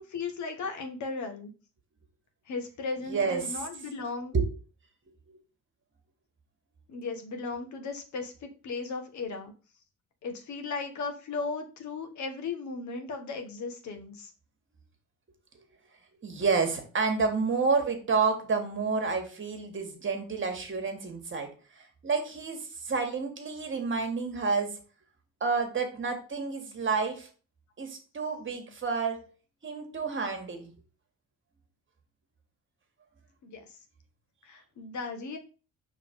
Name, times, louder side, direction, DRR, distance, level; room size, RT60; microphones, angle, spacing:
voice 1, 0.0-1.5 2.5-4.3 6.9-9.5 10.2-14.3 33.4-33.7 34.4-35.4, left 4 dB, 70° left, 6 dB, 1.3 m, -36 dB
voice 2, 3.1-3.4 4.3-4.4 16.2-24.8 25.4-27.3 27.8-29.3 29.6-30.7, right 4 dB, 40° right, 5 dB, 1.6 m, -29 dB
5.1 x 3.6 x 5.2 m, 0.35 s
cardioid pair, 90°, 30 cm